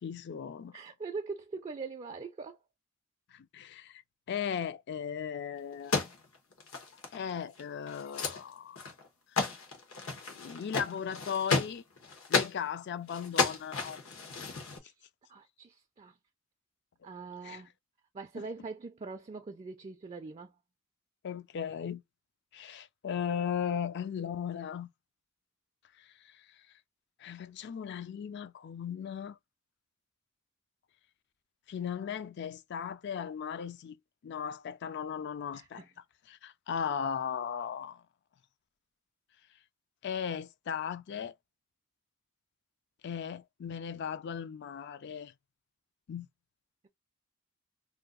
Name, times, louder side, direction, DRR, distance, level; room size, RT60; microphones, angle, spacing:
voice 1, 0.0-0.8 3.3-4.0 4.3-6.0 7.1-8.9 10.3-11.8 12.3-14.0 17.4-17.6 18.4-18.5 21.2-22.0 22.5-24.9 26.0-26.5 27.2-29.4 31.7-34.0 34.2-35.8 36.3-38.0 40.0-41.3 43.0-45.3 46.1-46.3, left 7 dB, 55° left, 0.3 m, -37 dB
voice 2, 0.7-2.6 14.8-16.2 17.0-17.7 18.1-20.5 35.5-35.9, right 4 dB, 30° right, 0.3 m, -42 dB
Woman messenger bag purse drop pickup rummage handle, 5.7-7.3 7.6-7.7 7.9-8.4 8.8-9.1 9.4-12.6 13.1-14.8, left 4 dB, 85° left, 1.1 m, -33 dB
2.7 x 2.3 x 3.6 m
head